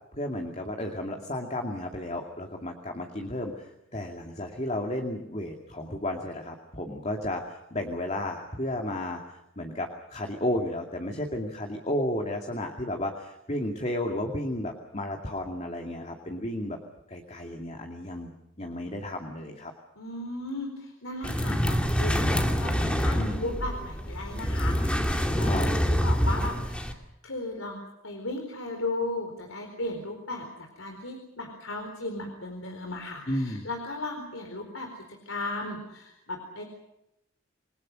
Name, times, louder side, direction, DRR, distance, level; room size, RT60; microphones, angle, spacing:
voice 1, 0.1-16.8 17.1-19.7 23.1-23.5 25.4-25.7 33.3-33.6, left 1 dB, 35° left, 3 dB, 2.5 m, -33 dB
voice 2, 20.0-27.0 27.2-36.6, left 2 dB, 85° left, 3 dB, 4.3 m, -36 dB
sound 1, 21.2-26.9, equal, 5° left, 2.2 m, -26 dB
28.0 x 21.5 x 6.4 m, 0.85 s
head